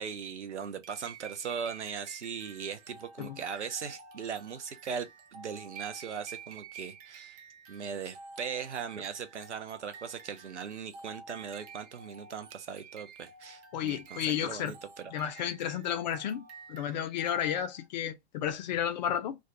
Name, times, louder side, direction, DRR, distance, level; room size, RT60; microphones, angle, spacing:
voice 1, 0.0-7.4 7.7-15.2, right 6 dB, 85° right, 0.5 m, -39 dB
sound 1, 0.8-17.9, right 5 dB, 35° right, 0.5 m, -50 dB
voice 2, 13.7-14.8 15.1-16.4 16.7-19.4, left 9 dB, 40° left, 0.4 m, -32 dB
2.2 x 2.2 x 2.7 m
figure-of-eight pair, 100°, 34 cm